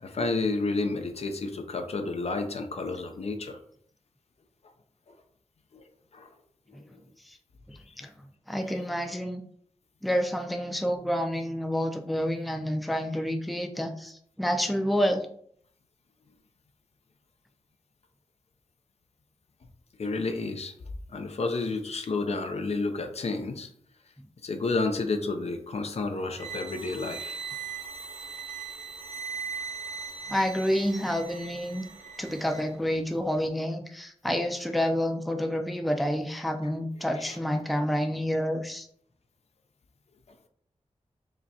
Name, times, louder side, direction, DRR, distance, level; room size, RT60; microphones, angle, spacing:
voice 1, 0.0-3.6 5.7-5.8 6.1-6.3 20.0-20.7 21.1-23.7 24.4-27.4 37.2-37.4, left 3 dB, 65° left, 6 dB, 0.5 m, -30 dB
voice 2, 8.5-9.4 10.0-15.3 30.3-31.9 32.2-38.9, equal, ahead, 5 dB, 0.4 m, -28 dB
sound 1, 26.4-32.7, right 6 dB, 90° right, 0.7 m, -39 dB
4.9 x 2.2 x 2.7 m, 0.64 s
wide cardioid pair, 90°, 12 cm